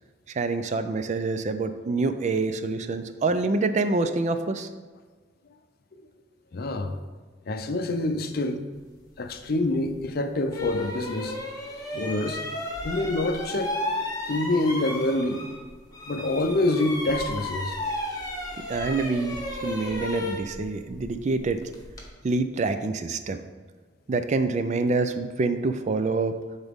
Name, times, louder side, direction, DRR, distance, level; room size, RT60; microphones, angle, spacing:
voice 1, 0.3-4.7 18.7-19.4 19.6-21.6 22.2-23.4 24.1-26.4, right 3 dB, 40° right, 9 dB, 0.4 m, -26 dB
voice 2, 6.5-6.9 7.5-8.6 9.2-11.4 11.9-12.4 12.8-13.8 14.3-15.4 16.1-17.8, left 2 dB, 55° left, 8 dB, 0.5 m, -26 dB
sound 1, 9.9-10.0 10.5-15.7 15.9-22.1, left 1 dB, 20° left, 1.1 m, -33 dB
9.6 x 4.0 x 3.5 m, 1.4 s
head